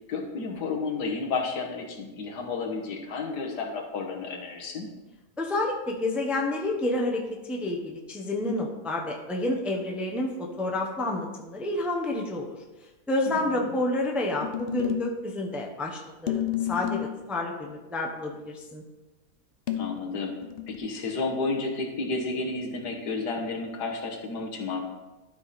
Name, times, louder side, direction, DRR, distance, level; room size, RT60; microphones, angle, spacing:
voice 1, 0.1-4.9 13.3-13.8 19.8-20.3 20.7-24.9, left 3 dB, 85° left, 1 dB, 1.9 m, -31 dB
voice 2, 5.4-12.5 13.1-16.4 16.7-18.8, left 2 dB, ahead, 0 dB, 0.7 m, -29 dB
sound 1, 14.4-15.2 16.3-17.2 19.7-20.8, left 11 dB, 55° left, 0.6 m, -31 dB
12.5 x 4.9 x 4.2 m, 1.1 s
omnidirectional pair, 1.7 m